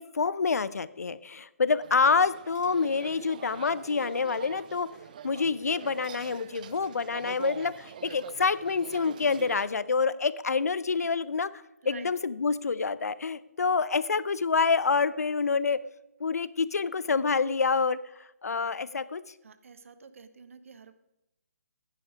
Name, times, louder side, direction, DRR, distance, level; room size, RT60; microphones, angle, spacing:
voice 1, 0.0-4.9 5.2-11.5 11.9-15.8 16.2-18.0 18.4-19.2, left 5 dB, 75° left, 17 dB, 0.6 m, -27 dB
sound 1, 1.8-9.7, right 9 dB, 30° right, 0.4 m, -45 dB
voice 2, 19.4-20.9, right 5 dB, 55° right, 11 dB, 1.0 m, -49 dB
10.0 x 8.9 x 5.0 m, 0.90 s
figure-of-eight pair, 150°, 9 cm